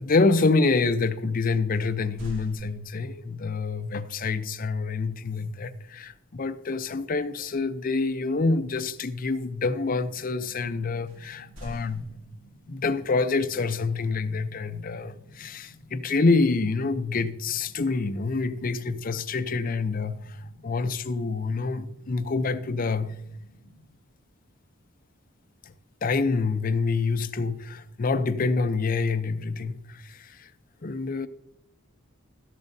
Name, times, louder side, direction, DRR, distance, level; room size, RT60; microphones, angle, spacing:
voice 1, 0.0-12.0 12.7-23.1 26.0-30.5 30.8-31.3, left 3 dB, 45° left, 0.6 m, -27 dB
sound 1, 1.7-3.3 6.1-6.4 6.8-7.1 11.1-12.7, equal, 75° right, 2.3 m, -46 dB
sound 2, 9.4-23.9, equal, 55° right, 4.6 m, -54 dB
13.0 x 10.5 x 2.7 m
head